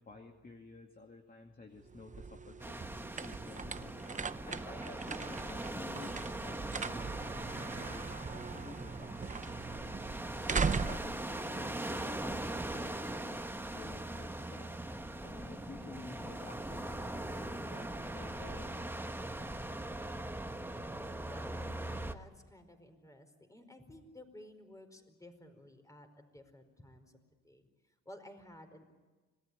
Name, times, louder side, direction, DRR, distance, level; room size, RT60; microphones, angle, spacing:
voice 1, 0.0-9.9 10.2-13.4 13.7-14.8 15.2-18.9, left 3 dB, 30° left, 3 dB, 2.4 m, -52 dB
sound 1, 1.8-12.5, right 5 dB, 25° right, 0.9 m, -40 dB
sound 2, 2.6-22.1, right 1 dB, 5° right, 1.5 m, -41 dB
voice 2, 21.0-27.1 27.4-27.7 28.0-28.9, left 1 dB, 10° left, 7 dB, 4.8 m, -54 dB
27.0 x 18.5 x 9.9 m, 1.3 s
cardioid pair, 90°, 30 cm